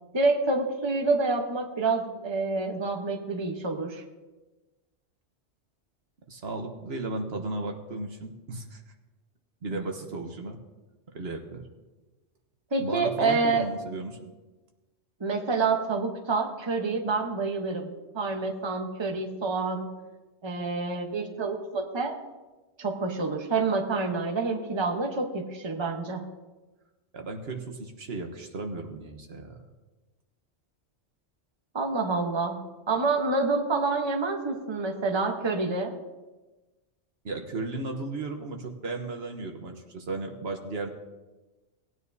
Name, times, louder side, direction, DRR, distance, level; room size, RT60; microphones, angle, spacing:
voice 1, 0.1-4.0 12.7-13.6 15.2-19.9 20.4-22.1 22.8-26.2 31.7-32.6 32.9-35.9, right 3 dB, 25° right, 3 dB, 1.0 m, -27 dB
voice 2, 6.3-8.8 9.6-10.6 11.1-11.6 12.8-14.3 27.1-29.6 37.2-40.9, right 3 dB, 65° right, 4 dB, 1.3 m, -35 dB
18.5 x 9.5 x 2.7 m, 1.2 s
omnidirectional pair, 1.2 m